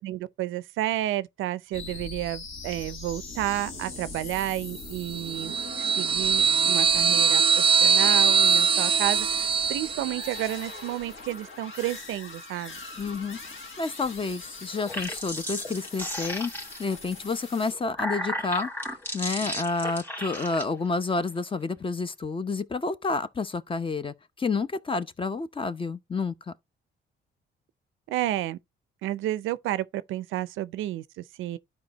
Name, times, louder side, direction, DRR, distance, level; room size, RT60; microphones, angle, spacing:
voice 1, 0.0-12.8 28.1-28.6 29.0-31.6, right 14 dB, 85° right, 0.5 m, -31 dB
sound 1, 1.7-17.7, left 3 dB, 80° left, 3.1 m, -42 dB
sound 2, 5.1-10.5, right 6 dB, 25° right, 0.4 m, -22 dB
voice 2, 13.0-13.4 13.8-18.7 19.1-26.5, left 4 dB, 25° left, 0.7 m, -29 dB
sound 3, 14.7-17.0 17.6-20.6, equal, 10° left, 1.7 m, -34 dB
12.0 x 4.8 x 2.9 m
cardioid pair, 90°, 20 cm